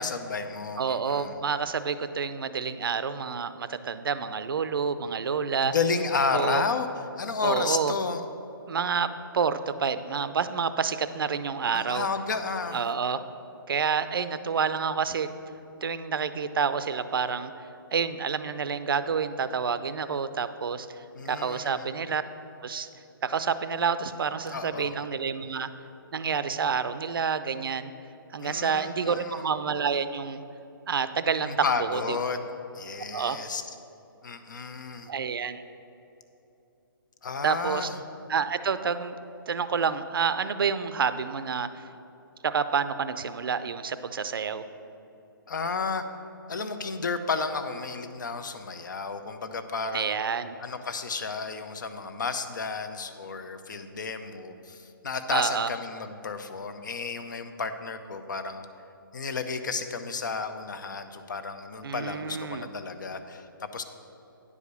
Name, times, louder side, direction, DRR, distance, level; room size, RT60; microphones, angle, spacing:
voice 1, 0.0-1.4 5.6-6.9 7.2-8.2 11.7-12.8 21.1-21.8 24.5-24.9 28.4-29.4 31.4-33.6 34.2-35.1 37.2-38.0 45.5-46.0 46.5-50.2 50.6-58.7 59.1-63.8, left 4 dB, 55° left, 9 dB, 0.7 m, -32 dB
voice 2, 0.8-5.7 6.3-6.6 7.4-7.9 8.7-12.1 12.7-13.2 13.7-15.3 15.8-22.2 22.6-22.9 23.2-25.7 26.1-27.9 28.3-30.4 30.9-31.5 31.8-32.2 33.1-33.4 35.1-35.6 37.4-37.9 38.3-39.1 39.5-41.8 42.4-44.6 49.9-50.6 55.3-55.7 61.8-62.7, right 6 dB, 70° right, 12 dB, 0.5 m, -28 dB
9.6 x 4.9 x 6.8 m, 2.9 s
hypercardioid pair, 180°, 12 cm